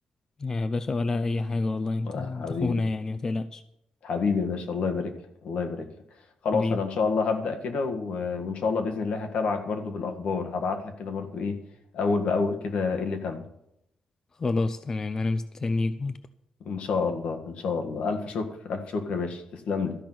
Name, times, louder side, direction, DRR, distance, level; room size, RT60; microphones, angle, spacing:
voice 1, 0.4-3.6 6.5-6.8 14.4-16.2, left 3 dB, 25° left, 13 dB, 0.4 m, -28 dB
voice 2, 2.0-2.8 4.0-5.1 5.4-5.9 6.4-11.6 11.9-13.4 16.6-20.0, left 4 dB, 70° left, 6 dB, 1.7 m, -28 dB
13.5 x 5.9 x 9.2 m, 0.78 s
wide cardioid pair, 155°, 2 cm